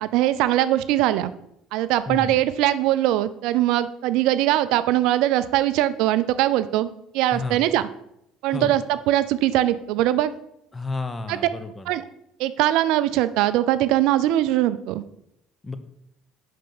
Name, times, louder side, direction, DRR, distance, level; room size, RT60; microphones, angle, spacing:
voice 1, 0.0-1.3 1.7-6.9 7.1-7.9 8.4-10.3 11.3-11.4 11.9-12.0 12.4-15.0, right 14 dB, 65° right, 14 dB, 0.4 m, -21 dB
voice 2, 2.1-2.4 7.3-7.6 8.5-8.7 10.7-11.9 15.6-15.8, left 3 dB, 20° left, 10 dB, 0.9 m, -31 dB
5.7 x 5.2 x 5.3 m, 0.78 s
hypercardioid pair, 65°, 0 cm